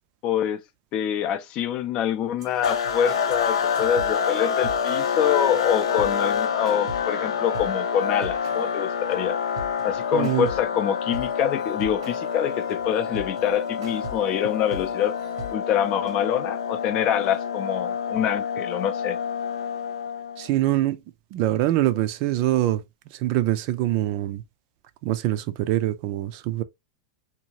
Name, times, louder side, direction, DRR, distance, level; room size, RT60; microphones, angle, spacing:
voice 1, 0.2-0.6 0.9-9.4 9.8-15.1 15.5-19.2, left 9 dB, 35° left, 0.4 m, -25 dB
sound 1, 2.4-15.5, right 1 dB, 85° right, 0.9 m, -42 dB
sound 2, 2.6-20.5, left 6 dB, 85° left, 0.6 m, -27 dB
voice 2, 10.1-10.5 20.4-21.0 21.3-24.4 25.0-26.6, right 14 dB, 45° right, 0.4 m, -24 dB
2.7 x 2.4 x 2.9 m
supercardioid pair, 140°, 3 cm